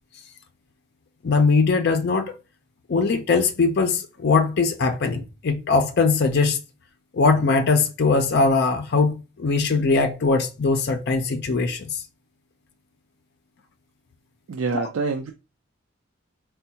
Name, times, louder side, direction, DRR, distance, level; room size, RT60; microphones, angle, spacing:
voice 1, 1.2-2.3 2.9-6.6 7.1-12.0, left 4 dB, 55° left, 0.4 m, -21 dB
voice 2, 14.5-15.3, right 4 dB, 85° right, 0.4 m, -26 dB
4.4 x 2.2 x 2.7 m
head